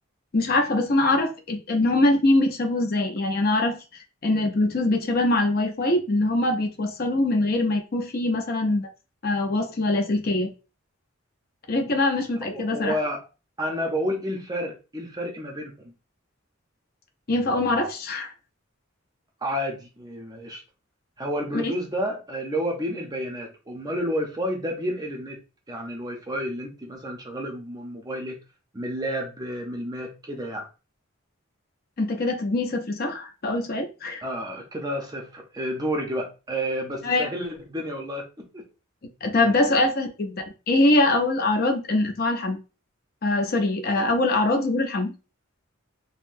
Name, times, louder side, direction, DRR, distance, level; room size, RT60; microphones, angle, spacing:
voice 1, 0.3-3.8 4.2-8.9 9.2-10.5 11.7-13.0 17.3-18.3 21.5-21.7 32.0-34.2 37.0-37.3 39.2-42.6 43.2-45.1, left 2 dB, 45° left, 0.6 m, -23 dB
voice 2, 12.5-13.2 13.6-15.9 19.4-20.6 21.2-25.4 25.7-28.4 28.7-30.7 34.2-38.6 39.4-39.8, equal, 20° right, 0.6 m, -30 dB
3.6 x 2.1 x 2.5 m
head